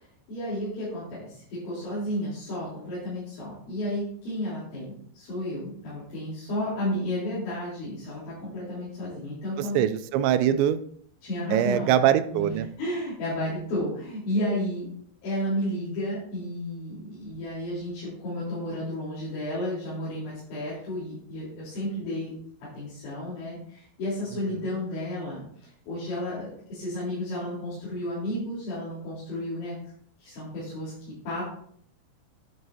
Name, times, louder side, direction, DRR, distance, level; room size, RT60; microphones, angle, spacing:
voice 1, 0.0-9.8 11.2-12.0 12.3-14.9 15.2-22.3 22.7-29.7 30.2-31.4, left 1 dB, 75° left, -10 dB, 6.3 m, -32 dB
voice 2, 9.8-10.8 11.5-12.7, right 10 dB, 80° right, 11 dB, 2.7 m, -22 dB
11.5 x 7.9 x 2.8 m, 0.63 s
omnidirectional pair, 5.5 m